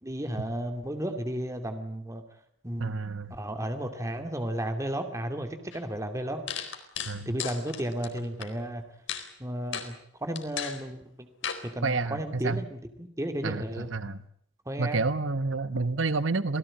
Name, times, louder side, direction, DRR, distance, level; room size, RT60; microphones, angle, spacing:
voice 1, 0.0-2.2 2.6-6.4 7.3-8.8 9.4-9.9 10.2-11.3 11.6-13.9 14.7-15.0, right 1 dB, 15° right, 6 dB, 2.6 m, -33 dB
voice 2, 2.8-3.3 7.1-7.3 11.8-12.6 13.4-14.2 14.8-16.6, right 3 dB, 85° right, 13 dB, 1.1 m, -29 dB
sound 1, 5.7-5.8 6.5-8.5 9.1-9.3 9.7-9.9 10.4-10.8 11.4-11.6, left 7 dB, 75° left, 4.2 m, -35 dB
27.5 x 18.0 x 8.8 m, 0.68 s
head